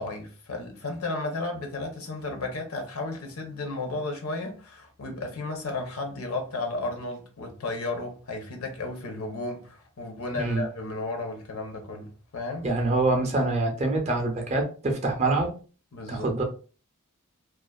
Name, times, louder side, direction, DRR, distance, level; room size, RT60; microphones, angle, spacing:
voice 1, 0.0-12.7 15.9-16.3, left 2 dB, 70° left, 0.7 m, -33 dB
voice 2, 10.3-10.6 12.6-15.5 16.1-16.4, right 2 dB, 30° right, 0.5 m, -25 dB
2.4 x 2.3 x 2.3 m
head